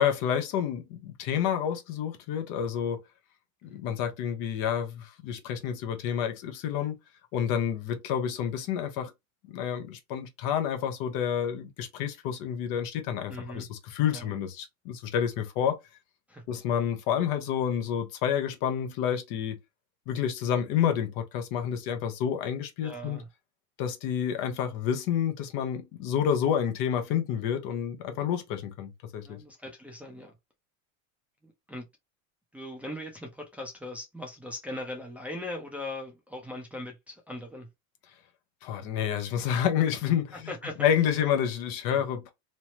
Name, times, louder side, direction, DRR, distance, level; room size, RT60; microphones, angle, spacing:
voice 1, 0.0-3.0 3.6-6.9 7.3-9.1 9.5-15.8 16.5-19.6 20.1-23.2 23.8-29.4 38.6-40.5 40.8-42.3, left 9 dB, 60° left, 0.9 m, -29 dB
voice 2, 13.3-13.7 14.1-14.3 16.3-16.4 22.8-23.3 29.3-30.3 31.4-31.8 32.5-37.7 40.5-40.9 41.9-42.0, left 1 dB, 5° right, 0.6 m, -40 dB
3.2 x 2.0 x 2.9 m
supercardioid pair, 125°, 40 cm